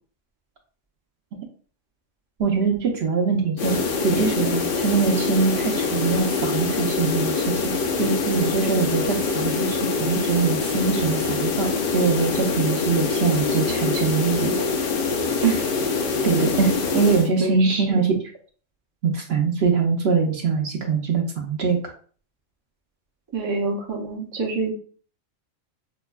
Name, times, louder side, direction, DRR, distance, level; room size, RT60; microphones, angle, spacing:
voice 1, 2.4-3.8 4.0-7.7 8.0-14.5 16.2-18.1 19.0-21.8, right 5 dB, 60° right, 1 dB, 0.8 m, -23 dB
sound 1, 3.6-17.3, left 4 dB, 60° left, 0.6 m, -24 dB
voice 2, 17.4-17.8 23.3-24.7, right 5 dB, 30° right, -1 dB, 0.5 m, -25 dB
5.1 x 2.1 x 2.3 m, 0.43 s
omnidirectional pair, 1.3 m